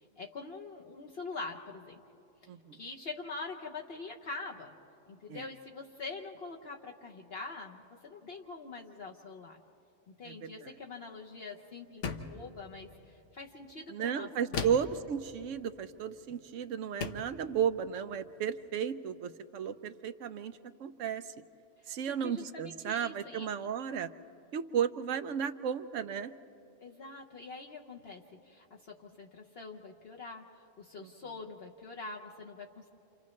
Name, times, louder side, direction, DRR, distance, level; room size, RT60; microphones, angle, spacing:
voice 1, 0.0-2.0 2.7-4.8 5.1-9.6 10.1-14.3 14.6-14.7 21.8-23.5 26.8-32.9, left 3 dB, 55° left, 0 dB, 1.1 m, -44 dB
voice 2, 2.5-2.8 5.3-5.4 10.2-10.7 13.9-21.3 21.9-24.1 24.5-26.3 31.0-31.1, right 8 dB, 85° right, 11 dB, 1.0 m, -34 dB
sound 1, 12.0-12.4 14.5-15.0 16.3-16.4 17.0-17.3, left 5 dB, 75° left, 1.2 m, -36 dB
29.5 x 28.0 x 3.2 m, 2.9 s
omnidirectional pair, 1.3 m